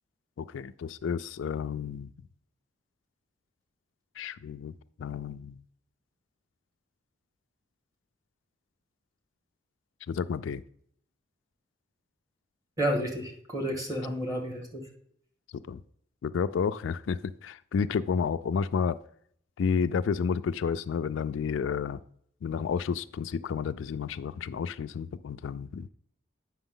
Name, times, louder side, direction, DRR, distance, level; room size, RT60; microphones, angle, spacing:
voice 1, 0.4-2.1 4.2-5.6 10.1-10.6 15.7-15.8 16.2-19.0 19.6-22.0 22.4-25.9, left 6 dB, 75° left, 13 dB, 0.3 m, -31 dB
voice 2, 12.8-14.8, equal, 20° right, 1 dB, 1.8 m, -31 dB
8.0 x 5.8 x 3.8 m, 0.66 s
head